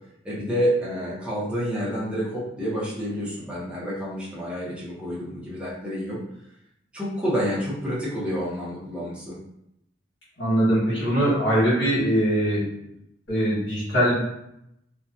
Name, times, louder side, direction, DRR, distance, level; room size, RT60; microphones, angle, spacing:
voice 1, 0.2-6.2 6.9-9.4, equal, 5° right, -8 dB, 0.7 m, -28 dB
voice 2, 10.4-12.7 13.3-14.1, equal, 75° left, -11 dB, 1.3 m, -21 dB
2.7 x 2.2 x 2.4 m, 0.79 s
head